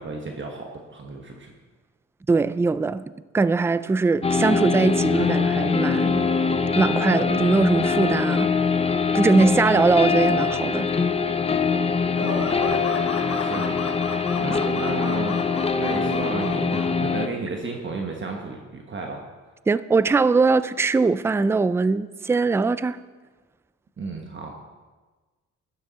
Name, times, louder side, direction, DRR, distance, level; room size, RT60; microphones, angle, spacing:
voice 1, 0.0-1.5 12.2-12.9 13.3-13.8 14.4-15.5 15.8-19.2 24.0-24.5, right 3 dB, 40° right, 1.3 m, -33 dB
voice 2, 2.3-3.0 3.3-6.3 6.8-8.5 9.1-10.9 19.7-23.0, right 4 dB, 10° right, 0.3 m, -21 dB
sound 1, 4.2-17.3, left 5 dB, 20° left, 0.7 m, -23 dB
sound 2, 12.1-16.9, left 4 dB, 50° left, 1.9 m, -34 dB
12.0 x 10.0 x 4.1 m
cardioid pair, 90°, 30 cm